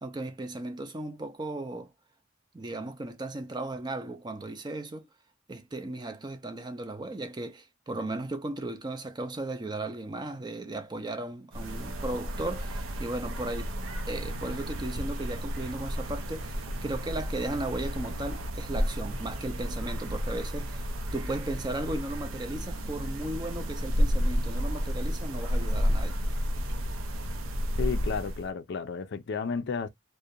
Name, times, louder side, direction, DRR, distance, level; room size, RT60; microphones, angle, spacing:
voice 1, 0.0-1.9 2.5-5.1 5.5-13.7 14.1-20.8 21.1-26.2, right 2 dB, 20° right, 0.4 m, -36 dB
sound 1, 11.5-28.5, equal, 85° right, 0.6 m, -32 dB
voice 2, 27.8-29.9, left 5 dB, 55° left, 0.4 m, -32 dB
2.4 x 2.1 x 2.7 m
head